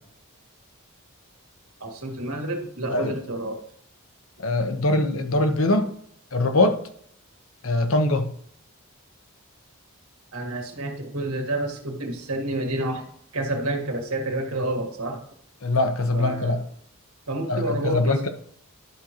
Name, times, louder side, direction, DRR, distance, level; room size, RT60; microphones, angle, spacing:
voice 1, 1.8-3.6 10.3-13.1 13.3-15.2 16.1-16.6 17.3-18.2, right 1 dB, 75° right, 1.8 m, -29 dB
voice 2, 4.4-5.9 6.3-6.8 7.6-8.3 15.6-16.6 17.5-18.3, left 2 dB, 70° left, 1.0 m, -22 dB
11.0 x 6.4 x 3.0 m
head